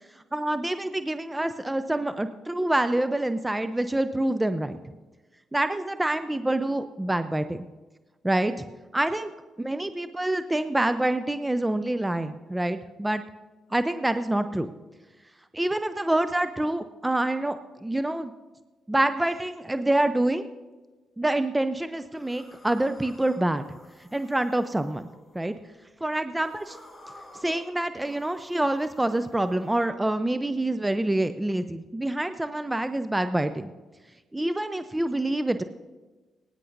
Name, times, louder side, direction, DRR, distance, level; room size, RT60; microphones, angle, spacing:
voice 1, 0.3-4.8 5.5-7.7 8.2-8.7 8.9-9.3 9.6-13.2 13.7-14.7 15.5-17.6 17.8-18.3 18.9-20.4 21.2-23.7 24.1-25.0 25.3-25.5 26.0-26.8 27.4-33.7 34.3-35.6, right 1 dB, 15° right, 10 dB, 0.6 m, -26 dB
sound 1, 22.1-25.7 26.2-29.9, left 1 dB, 15° left, 4.3 m, -51 dB
22.5 x 9.9 x 2.7 m, 1.2 s
hypercardioid pair, 50°, 0 cm